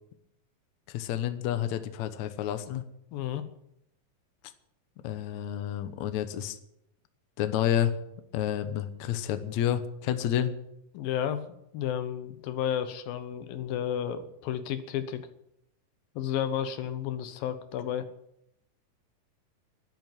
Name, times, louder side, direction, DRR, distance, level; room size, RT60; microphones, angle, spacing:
voice 1, 0.9-2.9 5.0-6.6 7.4-7.9 8.3-10.5, left 10 dB, 65° left, 10 dB, 2.1 m, -29 dB
voice 2, 3.1-3.4 10.9-11.4 11.7-15.3 16.2-18.1, left 9 dB, 80° left, 10 dB, 2.8 m, -32 dB
12.5 x 10.5 x 9.1 m, 0.79 s
omnidirectional pair, 4.1 m